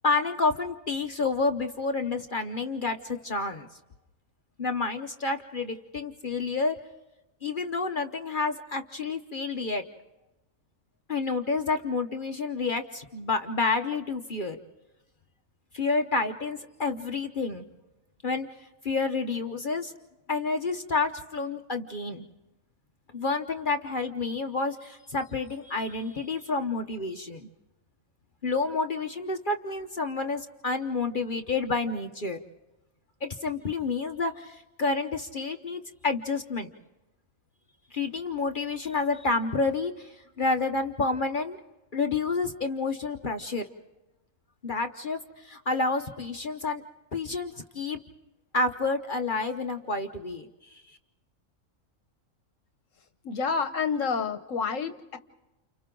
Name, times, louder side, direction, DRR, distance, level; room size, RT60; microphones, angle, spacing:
voice 1, 0.0-3.7 4.6-6.8 7.4-9.8 11.1-14.6 15.7-17.7 18.2-18.5 18.8-19.9 20.3-22.3 23.1-27.5 28.4-32.4 33.2-36.7 37.9-41.6 41.9-43.6 44.6-46.8 47.1-48.0 48.5-51.0, left 3 dB, 40° left, 5 dB, 1.1 m, -29 dB
voice 2, 53.2-55.2, left 5 dB, 75° left, 9 dB, 1.4 m, -29 dB
29.5 x 29.5 x 3.8 m, 1.0 s
omnidirectional pair, 1.4 m